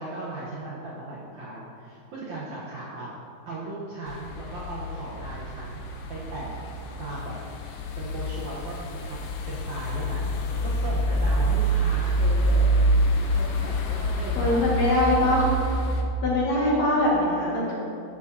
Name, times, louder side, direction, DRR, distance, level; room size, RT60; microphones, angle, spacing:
voice 1, 0.0-3.1 3.5-5.8 6.1-6.5 7.0-7.4 8.0-12.7 13.3-14.7, right 2 dB, 65° right, -7 dB, 1.9 m, -37 dB
sound 1, 4.1-16.0, right 1 dB, 75° left, 2.1 m, -26 dB
voice 2, 14.4-15.5 16.2-17.7, left 1 dB, 50° left, -7 dB, 2.8 m, -22 dB
14.5 x 7.9 x 2.8 m, 2.7 s
omnidirectional pair, 4.5 m